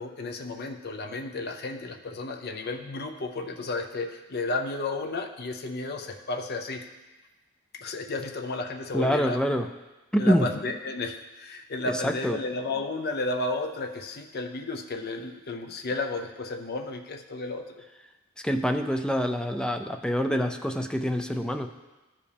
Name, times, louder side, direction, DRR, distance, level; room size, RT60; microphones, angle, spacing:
voice 1, 0.0-6.8 7.7-9.4 10.2-17.6 20.3-20.5, left 2 dB, 50° left, 4 dB, 0.6 m, -33 dB
voice 2, 8.9-9.7 10.1-10.5 11.9-12.4 18.4-21.7, equal, 5° left, 6 dB, 0.3 m, -26 dB
13.0 x 5.0 x 3.4 m, 1.1 s
head